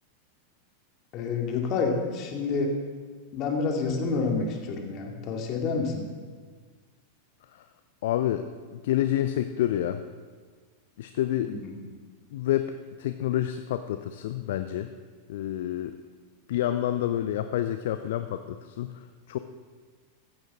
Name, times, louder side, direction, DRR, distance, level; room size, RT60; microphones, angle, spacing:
voice 1, 1.1-2.7 3.3-6.1 11.4-11.7, left 4 dB, 35° left, 1 dB, 2.5 m, -28 dB
voice 2, 8.0-10.0 11.0-11.5 12.3-12.7 13.0-14.9 15.3-16.0 16.5-19.4, left 12 dB, 55° left, 10 dB, 0.5 m, -28 dB
16.0 x 14.0 x 3.8 m, 1.5 s
figure-of-eight pair, 90°, 0 cm